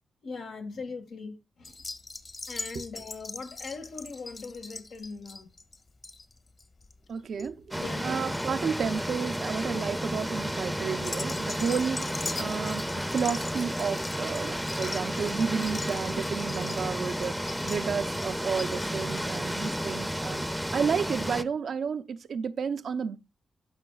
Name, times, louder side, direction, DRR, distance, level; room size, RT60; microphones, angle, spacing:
voice 1, 0.2-1.8 2.5-5.5 7.8-8.1, left 4 dB, 85° left, 1.8 m, -40 dB
sound 1, 1.6-8.4 8.7-9.2 9.8-10.1 10.9-20.7 21.0-21.1 21.3-21.4, left 3 dB, 50° left, 1.8 m, -41 dB
voice 2, 7.1-20.5 20.7-23.2, right 6 dB, 75° right, 0.6 m, -32 dB
sound 2, 7.7-21.4, equal, ahead, 0.7 m, -32 dB
11.5 x 6.2 x 2.4 m
cardioid pair, 60°, 0 cm